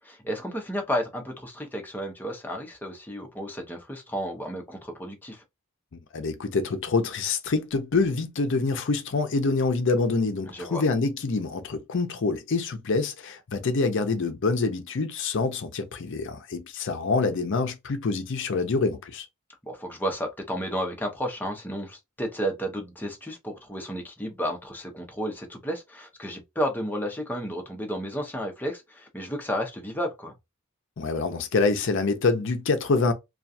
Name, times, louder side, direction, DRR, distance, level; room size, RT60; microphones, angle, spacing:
voice 1, 0.0-5.4 10.5-10.8 19.6-30.3, equal, 10° left, 0.6 m, -32 dB
voice 2, 5.9-19.3 31.0-33.1, left 3 dB, 60° left, 0.6 m, -26 dB
2.4 x 2.3 x 2.6 m
head